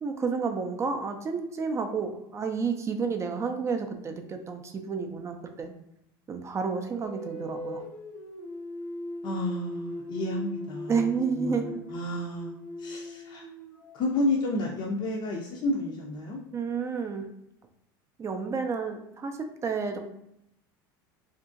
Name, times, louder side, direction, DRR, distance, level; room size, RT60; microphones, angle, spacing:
voice 1, 0.0-5.7 6.3-7.8 10.9-11.7 16.5-17.3 18.2-20.0, right 5 dB, 25° right, 5 dB, 0.3 m, -30 dB
sound 1, 6.9-14.2, left 1 dB, 85° left, 0.9 m, -39 dB
voice 2, 9.2-10.9 11.4-13.4 13.9-16.4, left 1 dB, 45° left, -2 dB, 0.5 m, -31 dB
2.8 x 2.5 x 2.4 m, 0.80 s
supercardioid pair, 105°, 12 cm